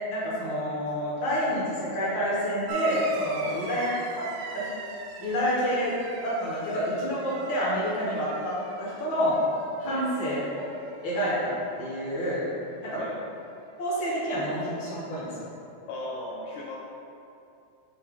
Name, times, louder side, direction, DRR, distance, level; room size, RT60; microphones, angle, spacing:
voice 1, 0.1-3.9 4.2-4.3 4.5-4.7 5.2-5.9 6.2-9.4 9.8-10.6 11.0-11.5 11.8-12.4 12.8-13.0 13.8-15.3, equal, 55° left, -8 dB, 1.4 m, -28 dB
sound 1, 2.7-11.7 12.0-12.7 13.8-13.9, right 4 dB, 80° right, 2.0 m, -42 dB
voice 2, 15.8-16.8, left 2 dB, 85° left, -2 dB, 1.8 m, -37 dB
7.0 x 3.3 x 4.7 m, 2.7 s
omnidirectional pair, 4.4 m